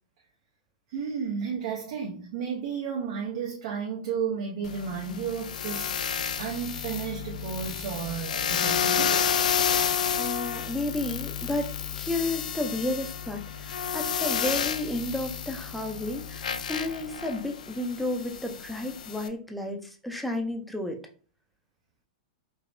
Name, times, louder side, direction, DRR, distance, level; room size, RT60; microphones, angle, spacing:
voice 1, 0.9-9.4, right 6 dB, 60° right, 0.7 m, -33 dB
sound 1, 4.6-19.3, left 7 dB, 85° left, 0.3 m, -30 dB
voice 2, 10.2-21.0, left 1 dB, ahead, 0.5 m, -32 dB
4.8 x 2.0 x 2.5 m
hypercardioid pair, 130°, 4 cm